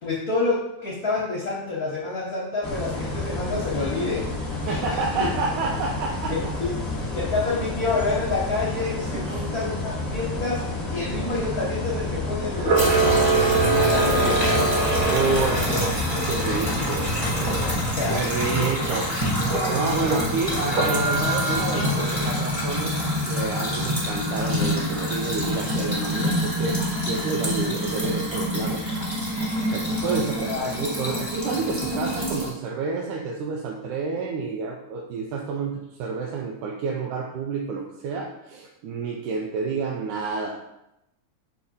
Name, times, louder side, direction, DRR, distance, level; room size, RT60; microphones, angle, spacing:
voice 1, 0.0-4.3 4.7-5.3 6.3-6.7 7.1-14.6 17.8-18.7 30.0-30.2 30.5-30.7, left 3 dB, 75° left, -7 dB, 0.8 m, -28 dB
sound 1, 2.6-17.8, left 2 dB, 25° left, 0.4 m, -30 dB
voice 2, 4.7-6.3 9.1-9.5 15.1-17.1 18.1-19.3 19.7-23.0 23.3-28.8 29.7-40.5, right 4 dB, 80° right, -1 dB, 2.0 m, -29 dB
Camera, 12.5-15.9 19.4-20.2 20.7-22.5, right 4 dB, 60° right, 1.8 m, -24 dB
sound 2, 12.7-32.5, equal, 30° right, 0.5 m, -26 dB
6.3 x 2.9 x 5.4 m, 0.86 s
omnidirectional pair, 3.5 m